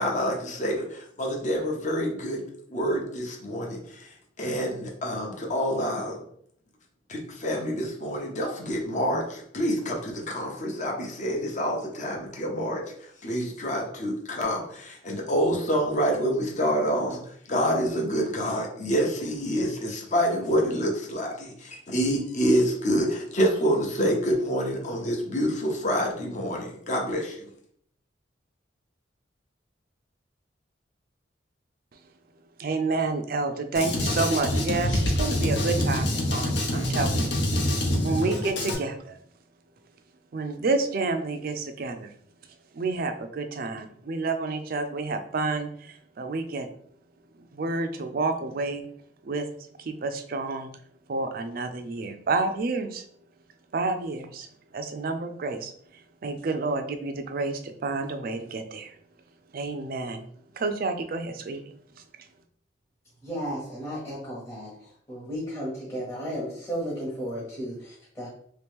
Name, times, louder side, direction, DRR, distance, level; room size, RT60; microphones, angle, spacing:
voice 1, 0.0-2.4 2.7-4.1 4.4-6.2 7.1-12.8 13.2-17.2 17.5-27.5, equal, 40° left, 0 dB, 0.8 m, -27 dB
voice 2, 32.6-37.3 38.0-39.2 40.3-42.1 42.7-46.7 47.5-48.9 49.2-49.5 49.8-50.7 51.1-53.0 53.7-54.5 54.7-55.7 56.2-58.9 59.5-60.3 60.6-61.7, right 3 dB, 50° right, 8 dB, 0.4 m, -29 dB
Drum kit, 33.7-38.7, left 1 dB, 70° left, 0.8 m, -25 dB
voice 3, 63.2-68.3, equal, 15° left, -8 dB, 0.9 m, -34 dB
3.1 x 3.0 x 3.5 m, 0.64 s
head